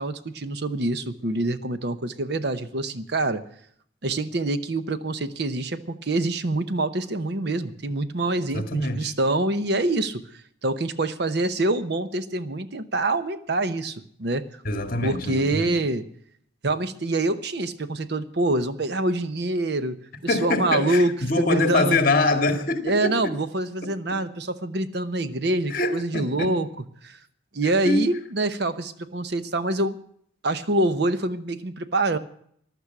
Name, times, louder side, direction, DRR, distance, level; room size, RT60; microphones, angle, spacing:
voice 1, 0.0-3.4 4.0-10.2 10.6-14.5 15.0-16.0 16.6-20.0 20.2-22.0 22.8-26.7 27.0-27.2 27.5-30.0 30.4-32.2, right 2 dB, 55° right, 0.9 m, -25 dB
voice 2, 8.5-9.1 14.7-15.7 20.3-23.3 25.2-25.3 25.7-26.5 27.8-28.0, left 2 dB, 45° left, 1.9 m, -24 dB
15.0 x 12.0 x 5.9 m
head